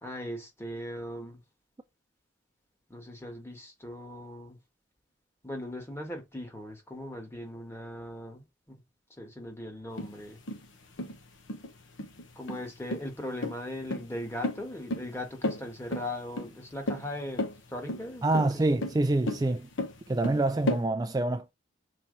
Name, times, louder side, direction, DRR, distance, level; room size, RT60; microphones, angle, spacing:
voice 1, 0.0-1.4 2.9-4.6 5.4-8.7 9.2-10.4 12.3-18.6, left 1 dB, 15° left, 1.6 m, -39 dB
sound 1, 10.0-20.8, left 1 dB, 80° left, 1.1 m, -34 dB
voice 2, 18.2-19.7 20.1-21.5, right 2 dB, 20° right, 0.3 m, -26 dB
5.8 x 4.3 x 4.1 m
head